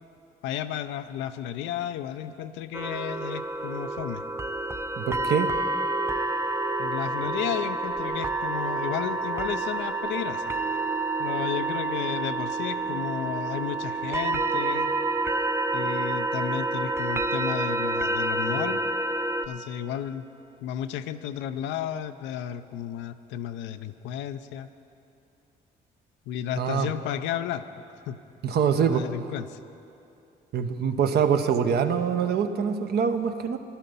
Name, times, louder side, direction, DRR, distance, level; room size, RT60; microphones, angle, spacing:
voice 1, 0.4-4.2 6.8-10.5 11.2-14.9 15.7-18.8 19.5-20.3 20.6-24.7 26.3-27.7 28.1-28.2 28.8-29.6, left 10 dB, 80° left, 11 dB, 0.5 m, -33 dB
sound 1, 2.7-19.5, right 2 dB, 15° right, 0.5 m, -28 dB
voice 2, 5.0-5.5 26.6-26.9 28.4-29.1 30.5-33.6, right 7 dB, 60° right, 8 dB, 0.8 m, -24 dB
12.0 x 11.5 x 5.4 m, 2.7 s
supercardioid pair, 65°, 19 cm